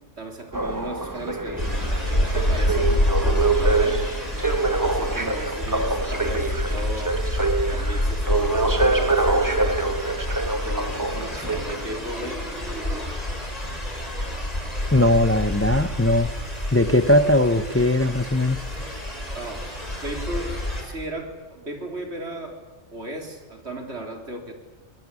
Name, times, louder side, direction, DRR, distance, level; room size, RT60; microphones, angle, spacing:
voice 1, 0.2-1.7 2.3-4.0 4.8-7.2 7.7-9.8 10.5-13.4 19.3-22.6 22.9-24.5, right 1 dB, 65° right, 4 dB, 4.0 m, -36 dB
sound 1, 0.5-12.1 12.8-12.9, right 3 dB, 15° right, 1.3 m, -25 dB
sound 2, 1.6-20.8, left 1 dB, 35° left, 4.9 m, -28 dB
voice 2, 14.9-16.3 16.7-18.6, left 1 dB, 15° left, 11 dB, 0.8 m, -19 dB
23.0 x 20.0 x 9.7 m, 1.3 s
omnidirectional pair, 1.2 m